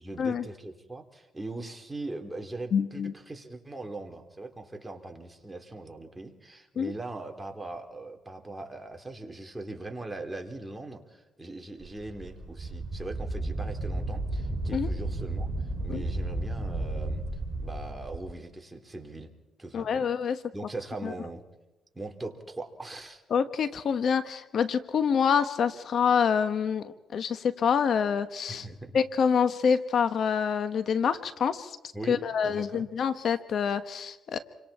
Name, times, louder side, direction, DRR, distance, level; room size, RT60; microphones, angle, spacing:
voice 1, 0.0-15.5 15.8-17.2 17.6-19.3 19.6-20.1 20.5-21.4 21.9-23.2 28.5-29.0 31.9-32.9, right 2 dB, 15° right, 3 dB, 3.7 m, -40 dB
voice 2, 2.7-3.1 6.8-6.9 14.7-14.9 15.9-16.0 19.7-20.4 21.0-21.1 23.3-28.7 28.9-31.8 32.1-34.4, left 7 dB, 60° left, 10 dB, 1.3 m, -26 dB
Wind, 11.8-18.2, right 2 dB, 30° right, 5.4 m, -33 dB
28.5 x 25.0 x 4.4 m, 1.0 s
cardioid pair, 90°, 0 cm